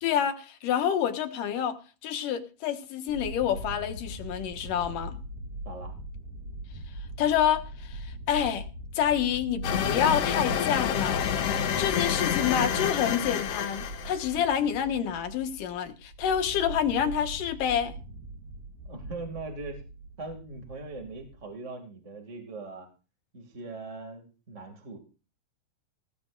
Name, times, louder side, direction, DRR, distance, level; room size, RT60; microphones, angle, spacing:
voice 1, 0.0-1.8 2.0-5.2 7.2-8.6 8.9-11.2 11.8-17.9, left 9 dB, 80° left, 7 dB, 3.0 m, -28 dB
sound 1, 3.1-21.5, right 1 dB, 60° right, 4.2 m, -41 dB
sound 2, 9.6-14.4, left 8 dB, 65° left, 1.8 m, -28 dB
voice 2, 18.8-19.8 20.2-22.9 23.3-25.0, right 3 dB, 25° right, 4 dB, 1.9 m, -40 dB
18.5 x 15.0 x 2.4 m, 0.33 s
omnidirectional pair, 3.8 m